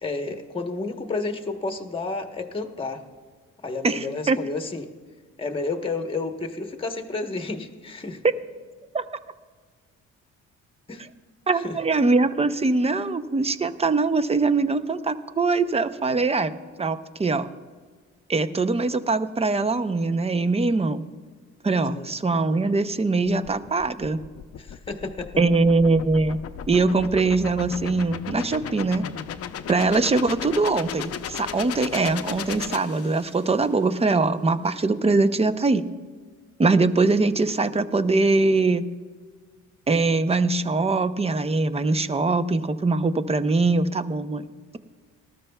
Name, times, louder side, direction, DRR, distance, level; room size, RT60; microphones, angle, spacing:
voice 1, 0.0-3.0 3.6-4.9 5.4-8.2 10.9-11.0 11.5-11.8 21.9-22.2 24.6-25.3, left 3 dB, 20° left, 5 dB, 1.1 m, -31 dB
voice 2, 3.8-4.4 8.9-9.0 11.5-16.5 16.8-17.5 18.3-21.0 21.6-24.2 25.4-26.4 26.7-29.1 29.7-35.8 36.6-38.8 39.9-44.5, right 3 dB, 20° right, 12 dB, 0.6 m, -22 dB
sound 1, 23.3-33.6, left 8 dB, 50° left, 0.6 m, -36 dB
19.0 x 13.5 x 2.3 m, 1.5 s
cardioid pair, 90°, 30 cm